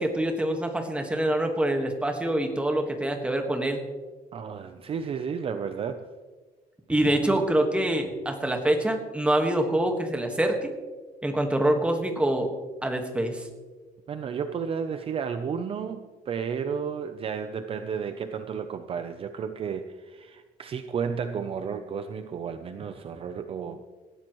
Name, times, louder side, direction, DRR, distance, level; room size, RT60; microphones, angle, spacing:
voice 1, 0.0-3.8 6.9-10.7 11.2-12.5 12.8-13.4, right 1 dB, 5° right, 4 dB, 1.5 m, -25 dB
voice 2, 4.3-6.1 14.1-23.8, right 6 dB, 40° right, 8 dB, 0.6 m, -32 dB
19.0 x 15.0 x 3.1 m, 1.4 s
cardioid pair, 170°, 15 cm